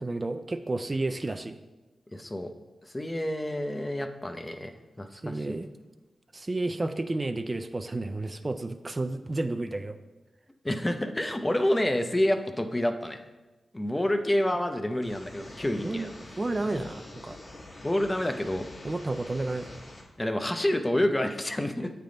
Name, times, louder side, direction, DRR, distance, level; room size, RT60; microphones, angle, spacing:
voice 1, 0.0-1.6 5.1-5.7 6.3-10.0 15.8-16.1 16.4-17.4 18.8-19.8, right 2 dB, 35° right, 9 dB, 0.3 m, -31 dB
voice 2, 2.1-2.5 2.8-5.6 10.6-13.2 13.7-16.1 16.7-16.9 17.8-18.7 20.2-21.9, left 1 dB, 20° left, 7 dB, 0.6 m, -28 dB
sound 1, 15.0-20.0, left 2 dB, 50° left, 1.3 m, -46 dB
8.2 x 3.4 x 3.8 m, 1.1 s
cardioid pair, 45°, 0 cm